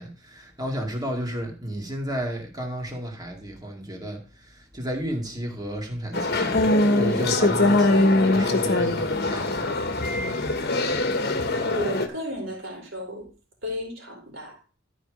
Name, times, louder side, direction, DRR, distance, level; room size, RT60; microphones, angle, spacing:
voice 1, 0.0-9.7, equal, 20° right, 2.2 m, -33 dB
sound 1, 6.1-12.1, left 2 dB, 50° left, 1.2 m, -22 dB
voice 2, 11.7-13.3 13.6-14.6, left 1 dB, 65° right, 3.9 m, -33 dB
12.5 x 5.1 x 5.1 m
head